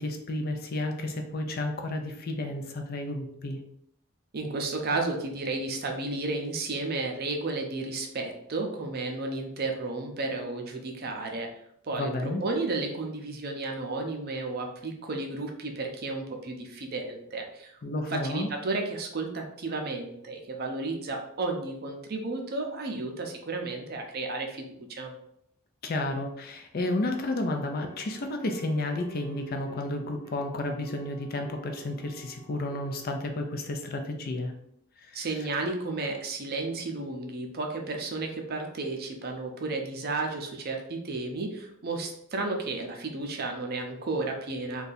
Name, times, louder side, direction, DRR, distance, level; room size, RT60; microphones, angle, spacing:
voice 1, 0.0-3.6 12.0-12.4 17.8-18.5 25.8-34.5 35.0-35.5, left 2 dB, 45° left, 4 dB, 0.4 m, -32 dB
voice 2, 4.3-11.5 11.8-25.1 35.1-44.9, right 3 dB, 45° right, 3 dB, 0.5 m, -33 dB
sound 1, 26.8-33.1, right 2 dB, 15° left, 0.8 m, -52 dB
2.7 x 2.3 x 4.0 m, 0.74 s
head